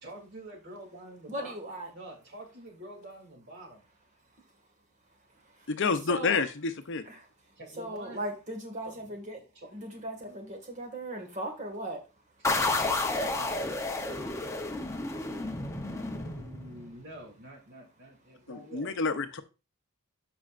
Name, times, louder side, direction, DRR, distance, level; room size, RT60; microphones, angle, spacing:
voice 1, 0.0-1.5 1.9-3.8 7.6-8.2 9.5-9.7 12.4-13.7 16.1-19.2, right 1 dB, 50° right, 0 dB, 2.9 m, -47 dB
voice 2, 1.3-1.9 6.1-6.4 7.8-9.4 9.7-12.0, right 1 dB, 35° right, 4 dB, 1.8 m, -37 dB
voice 3, 5.7-7.0 18.5-19.4, left 4 dB, 55° left, 10 dB, 0.7 m, -29 dB
sound 1, 12.4-17.0, left 2 dB, 15° left, 0.8 m, -31 dB
13.0 x 5.2 x 2.5 m, 0.30 s
head